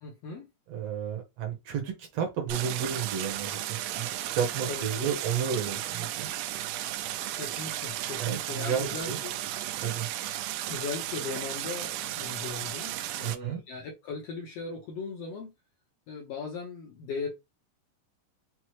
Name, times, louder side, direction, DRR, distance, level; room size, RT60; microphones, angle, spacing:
voice 1, 0.0-0.5 4.6-5.1 7.3-9.4 9.7-10.1 10.7-15.5 16.1-17.3, left 4 dB, 75° left, 1.4 m, -38 dB
voice 2, 0.7-6.3 8.2-9.2 9.8-10.1 13.2-13.6, right 7 dB, 70° right, 1.6 m, -32 dB
Stream, 2.5-13.4, right 13 dB, 85° right, 2.2 m, -34 dB
6.0 x 2.1 x 3.0 m
omnidirectional pair, 3.9 m